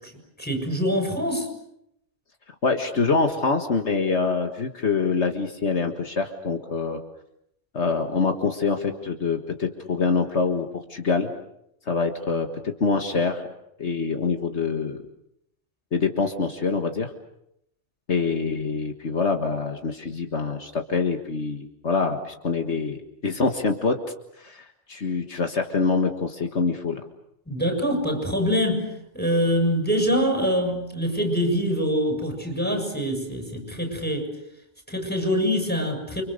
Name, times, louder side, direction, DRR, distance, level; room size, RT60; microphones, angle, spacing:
voice 1, 0.4-1.5 27.5-28.9 29.1-34.3 34.9-36.2, equal, 10° left, 4 dB, 6.8 m, -24 dB
voice 2, 2.6-7.0 7.7-11.3 11.9-13.5 13.8-15.0 15.9-17.1 18.1-24.0 24.4-27.0, left 4 dB, 70° left, 5 dB, 2.0 m, -25 dB
29.5 x 26.0 x 6.7 m, 0.76 s
omnidirectional pair, 1.2 m